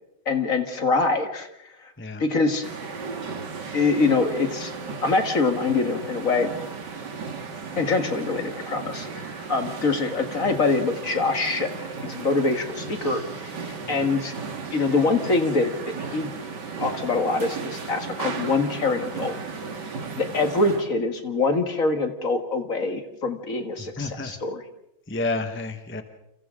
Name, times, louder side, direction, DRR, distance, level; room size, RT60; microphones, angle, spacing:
voice 1, 0.3-1.5 2.2-2.7 3.7-4.7 5.0-6.5 7.8-14.3 14.7-16.3 16.8-19.4 20.2-24.6, left 3 dB, 45° left, 6 dB, 2.0 m, -24 dB
sound 1, 2.6-20.9, right 5 dB, 60° right, 2.5 m, -35 dB
voice 2, 23.9-24.3 25.1-26.0, left 3 dB, 5° left, 7 dB, 1.1 m, -30 dB
29.5 x 27.5 x 3.8 m, 0.83 s
omnidirectional pair, 2.2 m